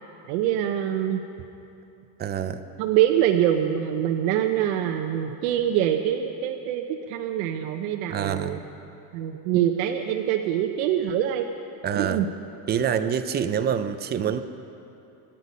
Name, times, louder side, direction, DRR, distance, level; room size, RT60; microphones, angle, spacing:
voice 1, 0.3-1.2 2.8-8.6 9.1-11.5 12.0-12.3, right 10 dB, 80° right, 4 dB, 1.0 m, -24 dB
voice 2, 2.2-2.6 8.1-8.6 11.8-12.2 12.7-14.4, right 8 dB, 25° right, 10 dB, 0.4 m, -26 dB
24.5 x 10.0 x 5.4 m, 2.8 s
cardioid pair, 155°, 43 cm